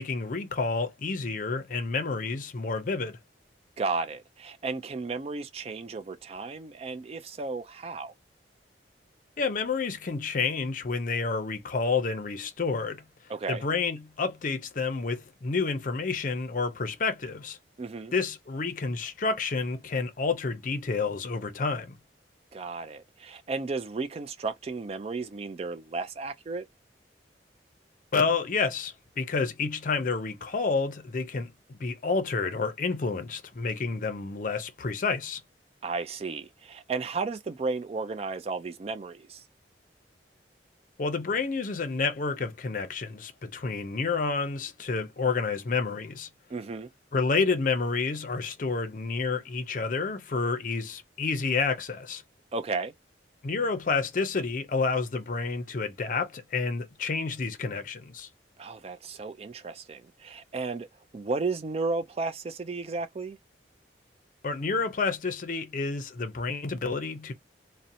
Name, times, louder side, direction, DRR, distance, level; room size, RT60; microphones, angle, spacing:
voice 1, 0.0-3.2 9.4-13.0 13.5-17.6 18.1-21.9 28.1-35.4 41.0-46.3 47.1-52.2 53.4-58.3 64.4-67.3, left 4 dB, 50° left, 0.5 m, -29 dB
voice 2, 3.8-8.1 13.3-13.6 17.8-18.1 22.5-26.7 35.8-39.4 46.5-46.9 52.5-52.9 58.6-60.9 61.1-63.4, right 3 dB, 35° right, 0.3 m, -33 dB
2.7 x 2.1 x 2.5 m
head